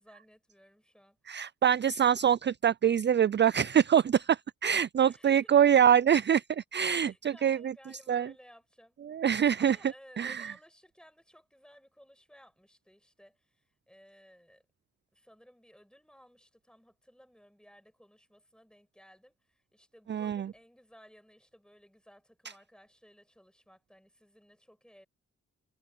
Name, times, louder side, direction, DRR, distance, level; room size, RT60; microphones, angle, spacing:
voice 1, 0.0-1.4 5.0-5.9 6.8-9.0 9.3-14.6 15.1-25.1, equal, 5° left, 6.8 m, -59 dB
voice 2, 1.3-7.7 8.1-8.3 9.1-9.8 10.2-10.5 20.1-20.5, right 9 dB, 35° right, 0.4 m, -25 dB
supercardioid pair, 45°, 32 cm